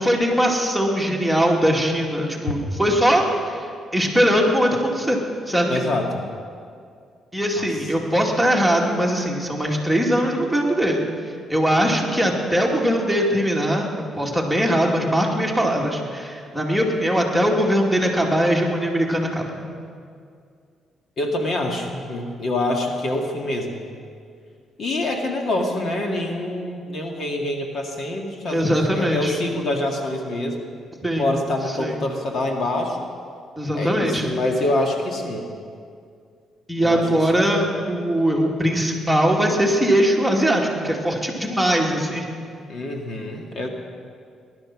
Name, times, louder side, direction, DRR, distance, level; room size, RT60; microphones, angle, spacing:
voice 1, 0.0-5.2 5.5-5.8 7.3-11.0 11.5-13.9 14.2-19.6 28.5-29.4 31.0-31.3 31.8-32.0 33.6-34.3 36.7-42.3, equal, ahead, 0 dB, 2.5 m, -21 dB
voice 2, 5.7-6.2 7.6-7.7 21.2-23.8 24.8-30.7 31.2-33.0 33.7-35.5 36.8-37.4 42.7-43.7, left 1 dB, 55° left, 2 dB, 2.0 m, -26 dB
19.0 x 12.0 x 6.1 m, 2.3 s
cardioid pair, 90°, 0 cm